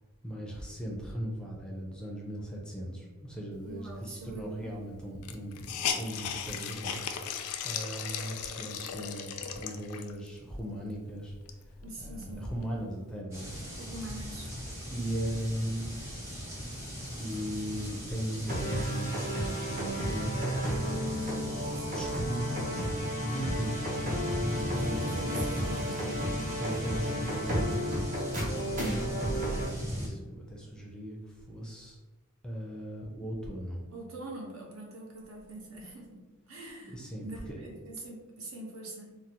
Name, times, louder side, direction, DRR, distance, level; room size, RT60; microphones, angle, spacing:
voice 1, 0.2-13.6 14.9-16.0 17.2-19.2 19.5-20.9 21.9-23.9 24.2-25.1 26.5-28.0 28.3-32.0 32.4-33.8 36.9-37.6, equal, 5° left, -2 dB, 0.4 m, -38 dB
voice 2, 3.6-4.7 11.8-12.5 13.8-14.5 21.7-22.1 23.6-24.1 24.8-26.2 33.9-39.1, right 2 dB, 70° right, -2 dB, 0.8 m, -44 dB
Hiss, 4.4-4.5 4.7-4.8 5.2-10.3 10.8-10.9 11.3-12.7, left 8 dB, 85° left, 0.3 m, -37 dB
sound 1, 13.3-30.1, equal, 15° right, 0.8 m, -39 dB
sound 2, 18.5-29.7, equal, 40° right, 0.9 m, -32 dB
3.9 x 2.0 x 2.8 m, 1.3 s
head